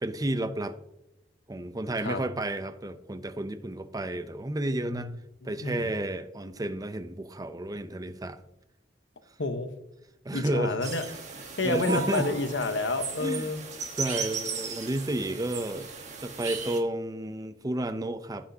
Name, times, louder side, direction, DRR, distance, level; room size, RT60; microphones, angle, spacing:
voice 1, 0.0-0.8 1.5-5.1 5.4-8.4 10.2-10.8 11.6-12.3 13.2-13.5 14.0-15.9 16.2-18.5, right 1 dB, 20° right, 0.5 m, -31 dB
voice 2, 5.4-5.9 9.4-9.7 10.3-11.0 11.3-13.6, left 3 dB, 85° left, 1.1 m, -30 dB
sound 1, 10.8-16.8, right 5 dB, 40° right, 1.3 m, -36 dB
16.5 x 5.9 x 2.8 m
head